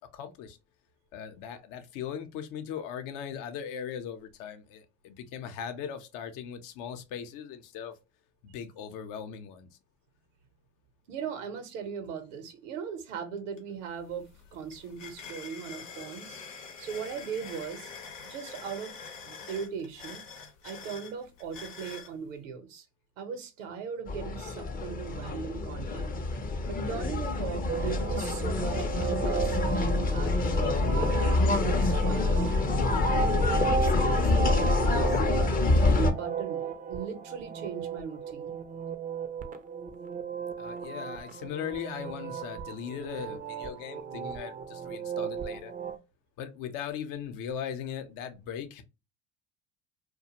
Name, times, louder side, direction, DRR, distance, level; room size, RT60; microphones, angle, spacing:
voice 1, 0.1-0.6 1.1-8.0 8.4-9.7 40.6-45.7 46.4-48.8, left 8 dB, 60° left, 0.7 m, -39 dB
voice 2, 11.1-16.4 16.8-17.9 18.2-19.0 19.2-20.2 20.6-22.9 23.2-26.1 26.6-32.6 33.1-35.2 35.6-38.5, right 6 dB, 85° right, 0.7 m, -38 dB
sound 1, 13.6-13.7 14.0-22.1, left 5 dB, 90° left, 0.8 m, -45 dB
sound 2, 24.1-36.1, left 3 dB, 25° left, 0.6 m, -26 dB
sound 3, 27.7-46.0, right 6 dB, 25° right, 0.4 m, -35 dB
2.4 x 2.2 x 2.8 m
hypercardioid pair, 85°, 37 cm